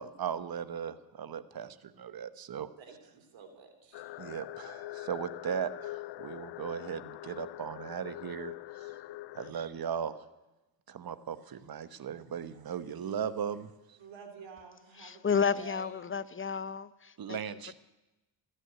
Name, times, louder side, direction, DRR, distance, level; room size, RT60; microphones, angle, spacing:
voice 1, 0.0-2.7 4.2-9.0 9.3-10.2 10.9-14.0 17.2-17.7, right 8 dB, 55° right, 1.1 m, -38 dB
voice 2, 2.8-4.1 9.4-9.6 14.0-15.9, right 5 dB, 80° right, 3.0 m, -51 dB
sound 1, 3.9-9.5, left 16 dB, 70° left, 0.5 m, -43 dB
voice 3, 15.0-17.4, left 6 dB, 30° left, 0.7 m, -31 dB
14.5 x 10.0 x 9.1 m
supercardioid pair, 60°, 44 cm